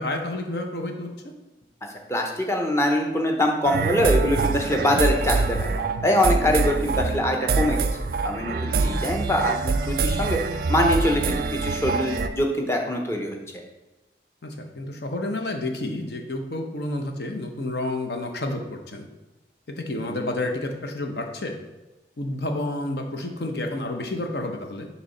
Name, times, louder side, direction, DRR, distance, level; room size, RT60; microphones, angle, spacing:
voice 1, 0.0-1.3 8.7-9.0 14.4-19.1 19.7-21.6 22.2-24.9, left 1 dB, 70° left, 4 dB, 0.8 m, -30 dB
voice 2, 2.1-7.9 8.2-10.4 10.7-11.4 11.6-13.4 20.1-20.3, left 1 dB, 15° left, 2 dB, 0.7 m, -24 dB
sound 1, 3.6-12.3, right 4 dB, 55° right, 0.3 m, -25 dB
6.7 x 3.1 x 5.4 m, 1.1 s
head